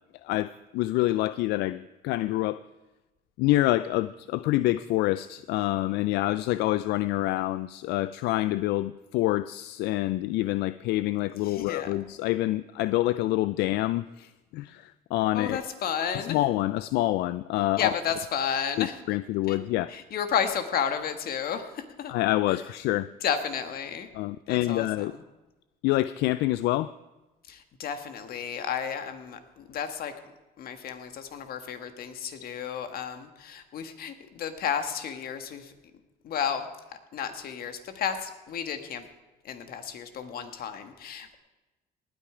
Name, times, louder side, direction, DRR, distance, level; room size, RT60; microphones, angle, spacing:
voice 1, 0.2-2.6 3.4-15.6 16.2-17.9 18.8-19.9 22.1-23.1 24.1-25.1 25.8-26.9, left 16 dB, 85° left, 15 dB, 0.4 m, -27 dB
voice 2, 11.4-11.9 15.3-16.4 17.8-19.0 19.5-19.6 19.9-22.1 22.5-22.6 23.2-24.1 24.5-25.2 27.5-30.1 30.6-35.7 36.2-36.7 37.1-39.1 39.4-41.4, left 8 dB, 60° left, 8 dB, 1.5 m, -32 dB
19.0 x 9.0 x 4.9 m, 1.1 s
cardioid pair, 110°, 17 cm